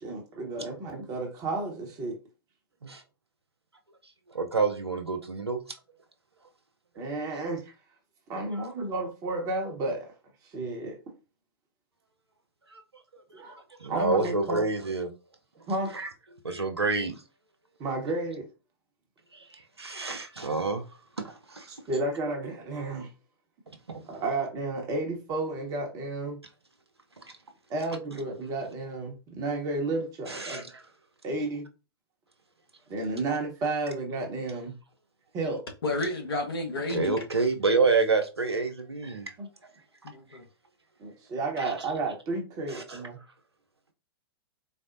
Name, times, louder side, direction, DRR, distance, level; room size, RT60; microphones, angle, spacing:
voice 1, 0.0-2.2 7.0-7.7 8.3-10.1 10.4-11.0 13.3-13.6 13.9-14.6 15.7-15.9 17.8-18.5 21.7-23.1 24.1-26.4 27.7-30.6 31.2-31.7 32.9-34.7 35.3-35.6 39.4-39.5 41.0-43.2, right 2 dB, 25° right, 0.9 m, -32 dB
voice 2, 4.3-5.6 12.7-12.8 13.3-13.4 13.8-15.1 15.9-16.1 16.4-17.2 19.3-20.8 21.2-21.7 23.9-24.0 30.3-30.7 36.9-39.3 41.6-41.7 42.7-43.0, right 4 dB, 85° right, 0.6 m, -28 dB
voice 3, 35.8-37.1 40.0-40.4, left 2 dB, 65° left, 1.0 m, -31 dB
4.1 x 2.0 x 2.5 m
figure-of-eight pair, 105°, 13 cm